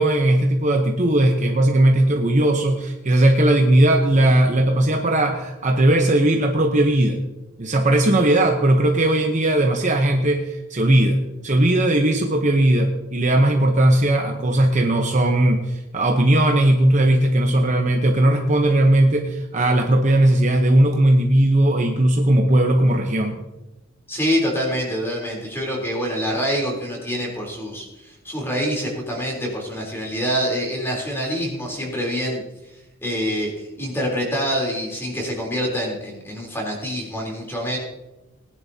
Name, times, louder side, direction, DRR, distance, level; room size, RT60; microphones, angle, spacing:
voice 1, 0.0-7.2 7.6-23.4, right 1 dB, 35° right, 3 dB, 0.9 m, -18 dB
voice 2, 24.1-32.4 33.0-37.8, equal, 10° left, -1 dB, 3.5 m, -26 dB
19.5 x 10.5 x 2.8 m, 1.0 s
head